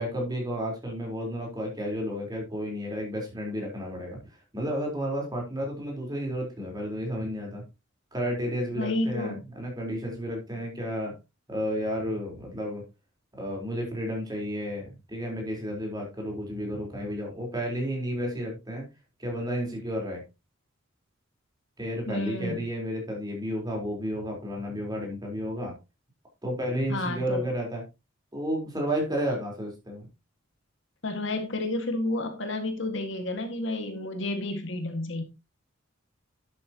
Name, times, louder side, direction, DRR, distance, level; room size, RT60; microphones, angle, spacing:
voice 1, 0.0-4.2 4.5-7.6 8.1-11.1 11.5-12.8 13.4-18.8 19.2-20.2 21.8-25.7 26.4-27.8 28.3-30.1, equal, 20° right, 0 dB, 4.1 m, -32 dB
voice 2, 8.8-9.4 10.5-10.7 22.1-22.6 26.9-27.4 31.0-35.2, left 2 dB, 60° left, 5 dB, 1.9 m, -31 dB
11.0 x 8.5 x 2.9 m, 0.26 s
head